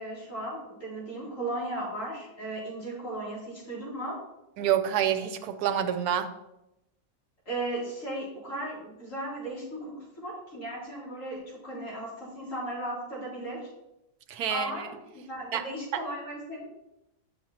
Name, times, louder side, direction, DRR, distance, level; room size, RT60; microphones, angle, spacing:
voice 1, 0.0-4.2 7.4-13.7 14.5-16.7, right 1 dB, 55° left, -5 dB, 3.3 m, -36 dB
voice 2, 4.6-6.3 14.3-14.9 15.5-15.7, right 9 dB, 85° right, 8 dB, 1.2 m, -27 dB
8.7 x 6.5 x 2.8 m, 0.90 s
omnidirectional pair, 1.6 m